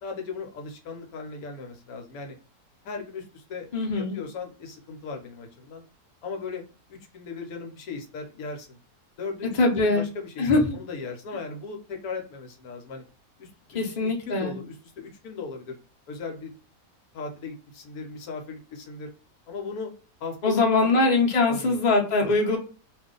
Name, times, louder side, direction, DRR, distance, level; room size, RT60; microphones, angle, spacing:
voice 1, 0.0-2.4 2.8-3.7 4.0-5.8 6.2-6.6 6.9-8.8 9.2-13.0 13.4-15.7 16.1-16.5 17.1-19.1 19.5-19.9 20.2-21.1 21.5-22.0, left 4 dB, 75° left, 3 dB, 1.1 m, -37 dB
voice 2, 3.7-4.2 9.6-10.0 10.4-10.7 13.7-14.5 20.4-22.6, left 3 dB, 35° left, 0 dB, 0.7 m, -22 dB
2.6 x 2.4 x 3.7 m, 0.38 s
omnidirectional pair, 1.7 m